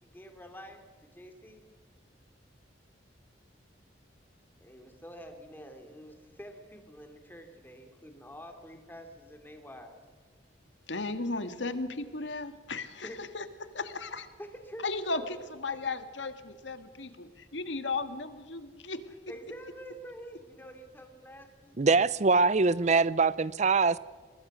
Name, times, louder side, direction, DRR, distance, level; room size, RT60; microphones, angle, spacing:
voice 1, 0.0-1.6 4.6-10.0 13.0-13.2 14.4-15.3 19.3-21.8, equal, 10° left, 2.9 m, -47 dB
voice 2, 10.9-14.3 14.8-19.0, left 3 dB, 85° left, 1.7 m, -35 dB
voice 3, 21.8-24.0, right 4 dB, 40° right, 0.6 m, -23 dB
23.5 x 21.0 x 6.3 m
head